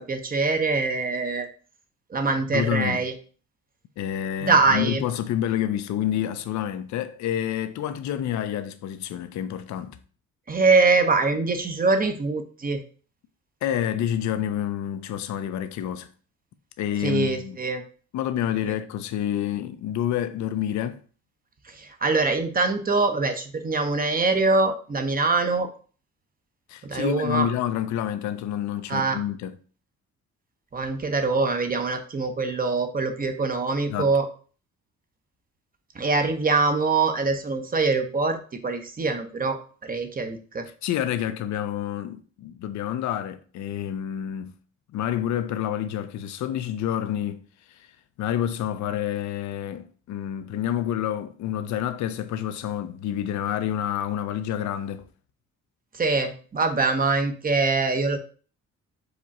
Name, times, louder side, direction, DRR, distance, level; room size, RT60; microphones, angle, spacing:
voice 1, 0.1-1.5 2.1-3.1 4.4-5.0 10.5-12.8 17.0-17.8 21.6-25.7 26.8-27.5 28.9-29.2 30.7-34.3 35.9-38.4 38.6-40.7 55.9-58.2, right 3 dB, 30° right, 0.7 m, -23 dB
voice 2, 2.5-3.0 4.0-10.0 13.6-16.1 16.8-17.6 18.1-21.0 26.7-29.6 33.9-34.1 40.8-44.5 44.9-47.4 47.7-47.8 48.2-55.0, left 10 dB, 70° left, 0.5 m, -28 dB
4.9 x 2.4 x 4.1 m
cardioid pair, 90°, 30 cm